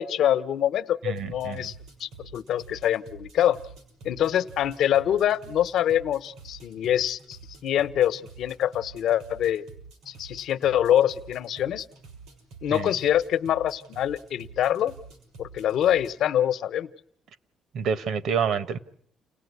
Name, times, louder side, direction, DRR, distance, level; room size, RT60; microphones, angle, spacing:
voice 1, 0.0-1.7 2.0-3.6 4.0-9.7 10.1-11.8 12.6-15.0 15.4-16.9, left 11 dB, 65° left, 1.0 m, -25 dB
voice 2, 1.0-1.7 12.7-12.9 17.7-18.8, right 6 dB, 65° right, 1.3 m, -28 dB
sound 1, 1.2-16.2, right 4 dB, 85° right, 6.5 m, -48 dB
30.0 x 19.0 x 9.6 m
cardioid pair, 170°, 0 cm